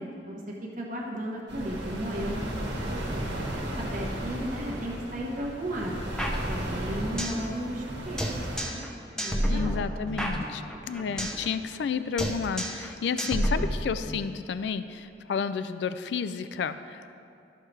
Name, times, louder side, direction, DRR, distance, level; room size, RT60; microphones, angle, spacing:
voice 1, 0.0-3.3 3.7-6.0 6.5-8.9 9.2-9.8, right 1 dB, 50° right, -2 dB, 1.1 m, -35 dB
sound 1, 1.5-8.6, right 1 dB, 85° right, 1.5 m, -34 dB
sound 2, 6.2-7.5 7.7-7.8 8.2-8.9 9.2-11.5 11.7-11.9 12.2-12.9 13.2-14.2, equal, 5° left, 0.6 m, -30 dB
voice 2, 9.4-17.0, left 6 dB, 75° left, 12 dB, 0.3 m, -31 dB
12.5 x 6.5 x 3.3 m, 2.5 s
head